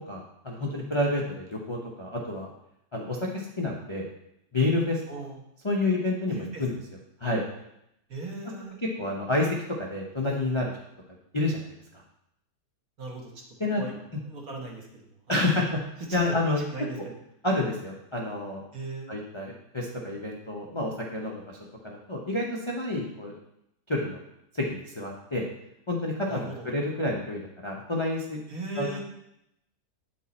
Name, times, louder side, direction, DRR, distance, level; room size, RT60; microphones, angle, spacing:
voice 1, 0.0-2.5 2.9-4.0 4.5-5.0 5.6-6.7 7.2-7.4 9.0-10.8 11.3-11.7 13.6-13.8 15.3-15.8 16.1-16.6 17.4-18.6 19.1-21.6 21.8-23.3 23.9-24.2 24.5-25.4 25.9-28.4 28.8-28.9, left 2 dB, 30° left, -3 dB, 0.5 m, -29 dB
voice 2, 5.1-5.4 6.3-6.7 8.1-8.8 13.0-13.3 13.8-13.9 14.2-15.5 16.1-17.2 18.7-19.1 26.3-26.7 28.5-29.0, right 2 dB, 60° right, -1 dB, 1.8 m, -38 dB
8.4 x 4.6 x 4.1 m, 0.80 s
omnidirectional pair, 1.8 m